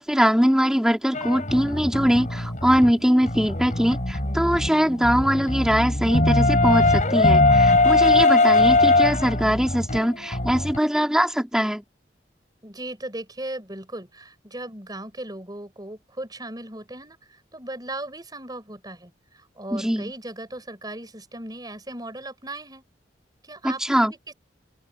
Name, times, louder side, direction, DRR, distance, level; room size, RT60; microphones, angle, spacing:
voice 1, 0.0-11.8 19.7-20.1 23.6-24.1, equal, 5° right, 3.9 m, -22 dB
sound 1, 1.1-10.8, left 2 dB, 45° left, 4.3 m, -21 dB
voice 2, 12.6-17.2 17.5-19.1 19.6-22.8 23.4-24.3, right 1 dB, 20° right, 5.0 m, -37 dB
open air
head